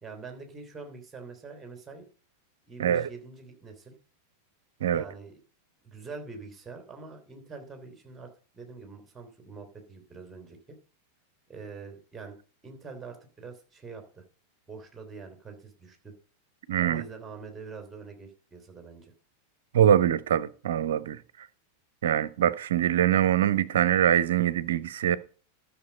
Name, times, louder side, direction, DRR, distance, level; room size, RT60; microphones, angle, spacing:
voice 1, 0.0-2.1 2.7-3.9 4.9-5.4 5.8-10.8 11.5-12.4 12.6-14.2 14.7-16.1 16.8-19.1, right 4 dB, 15° right, 3.1 m, -44 dB
voice 2, 16.7-17.0 19.7-21.2 22.0-25.2, right 10 dB, 60° right, 0.7 m, -23 dB
12.5 x 6.6 x 5.1 m
figure-of-eight pair, 90°, 0 cm